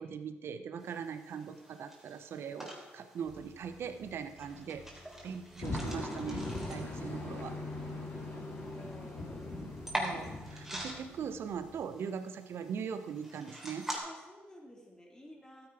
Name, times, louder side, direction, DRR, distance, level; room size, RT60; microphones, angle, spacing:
voice 1, 0.0-4.8 5.2-7.6 9.9-13.9, right 7 dB, 70° right, 10 dB, 1.0 m, -41 dB
sound 1, 0.8-14.0, equal, 5° right, 3.4 m, -45 dB
sound 2, 3.2-11.9, right 1 dB, 30° right, 2.6 m, -58 dB
sound 3, 5.6-11.3, left 2 dB, 55° left, 3.5 m, -40 dB
voice 2, 8.2-9.4 14.0-15.7, left 1 dB, 15° left, -1 dB, 3.7 m, -53 dB
12.5 x 9.1 x 5.0 m, 1.2 s
cardioid pair, 70°, 4 cm